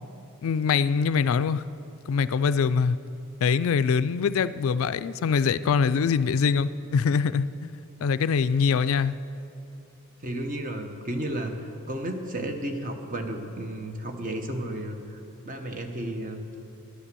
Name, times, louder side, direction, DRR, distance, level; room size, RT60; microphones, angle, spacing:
voice 1, 0.4-1.6 2.1-3.0 3.4-7.7 8.0-9.2, left 6 dB, 65° left, 15 dB, 0.3 m, -23 dB
voice 2, 10.2-15.2 15.4-16.4, right 1 dB, 35° right, 4 dB, 1.1 m, -33 dB
11.0 x 10.0 x 6.8 m, 2.8 s
head